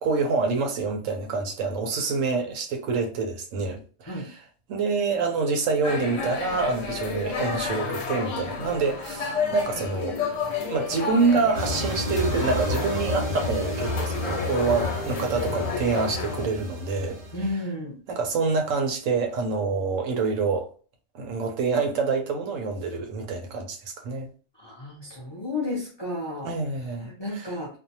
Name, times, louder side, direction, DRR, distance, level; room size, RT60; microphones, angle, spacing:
voice 1, 0.0-4.4 4.7-10.2 10.6-17.6 18.1-20.7 21.1-24.3 26.4-27.6, right 4 dB, 90° right, 1.0 m, -27 dB
sound 1, 5.8-16.5, left 5 dB, 85° left, 1.0 m, -31 dB
sound 2, 11.5-17.5, left 1 dB, 50° right, 0.3 m, -31 dB
voice 2, 17.3-18.0 24.6-26.5 27.0-27.7, left 2 dB, 35° left, 0.4 m, -32 dB
2.5 x 2.1 x 2.7 m
omnidirectional pair, 1.3 m